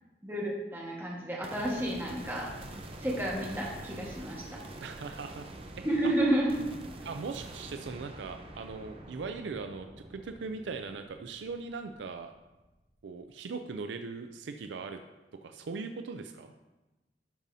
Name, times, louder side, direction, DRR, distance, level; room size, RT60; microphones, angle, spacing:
voice 1, 0.2-2.5 2.9-4.6 5.8-6.5, right 1 dB, 10° right, -4 dB, 1.5 m, -31 dB
sound 1, 1.4-12.8, right 1 dB, 30° right, 0.7 m, -46 dB
voice 2, 4.8-5.5 5.8-6.1 7.0-12.3 13.0-15.0 15.4-16.5, right 4 dB, 90° right, 7 dB, 0.4 m, -40 dB
12.0 x 5.4 x 2.7 m, 1.1 s
head